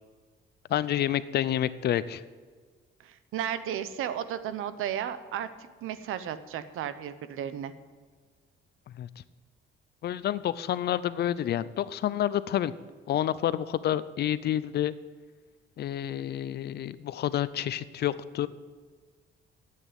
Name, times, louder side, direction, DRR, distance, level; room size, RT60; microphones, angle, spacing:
voice 1, 0.7-2.2 8.9-9.1 10.0-12.7 13.1-14.9 15.8-18.5, left 11 dB, 50° left, 16 dB, 0.5 m, -29 dB
voice 2, 3.0-5.5 5.8-7.7, right 10 dB, 90° right, 12 dB, 0.9 m, -34 dB
10.0 x 8.4 x 9.1 m, 1.5 s
cardioid pair, 165°, 21 cm